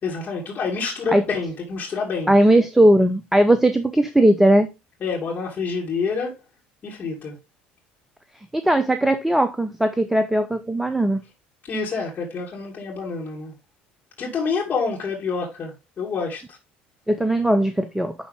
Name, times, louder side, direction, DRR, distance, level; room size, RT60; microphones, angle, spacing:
voice 1, 0.0-2.3 5.0-6.4 6.8-7.3 11.7-13.5 14.2-16.6, left 5 dB, 35° left, 2.6 m, -27 dB
voice 2, 2.3-4.7 8.5-11.2 17.1-18.1, right 1 dB, 5° right, 0.7 m, -18 dB
10.5 x 3.8 x 3.5 m
figure-of-eight pair, 60°, 5 cm